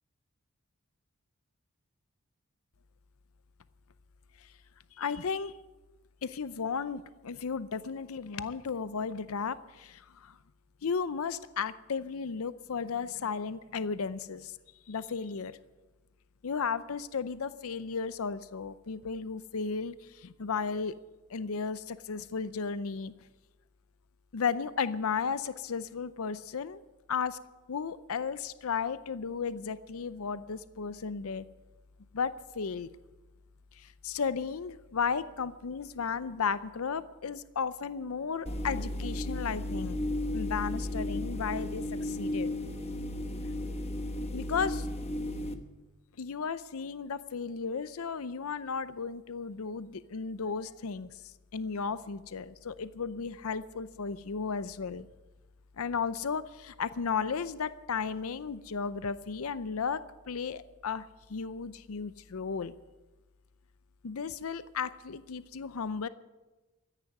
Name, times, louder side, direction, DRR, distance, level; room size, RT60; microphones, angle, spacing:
voice 1, 5.0-5.5 6.2-10.4 10.8-14.6 14.9-15.5 16.4-20.9 21.3-23.1 24.3-26.8 27.1-27.4 27.7-31.4 32.1-32.9 33.8-40.0 40.3-42.5 44.3-44.9 46.2-51.1 51.5-55.1 55.8-60.0 60.3-61.0 61.3-62.7 64.0-66.1, left 5 dB, 80° left, 14 dB, 0.6 m, -34 dB
sound 1, 38.5-45.5, left 1 dB, 30° left, 1.1 m, -34 dB
14.0 x 10.0 x 9.6 m, 1.1 s
head